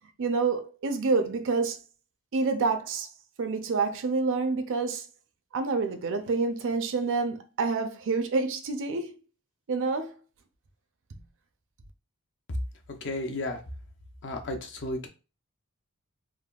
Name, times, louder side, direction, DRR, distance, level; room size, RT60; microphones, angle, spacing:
voice 1, 0.2-1.8 2.3-3.1 3.4-5.0 5.5-9.1 9.7-10.1, right 4 dB, 60° right, 0.5 m, -27 dB
voice 2, 12.9-13.6 14.2-15.1, left 1 dB, 55° left, 0.6 m, -33 dB
3.4 x 2.2 x 2.3 m
head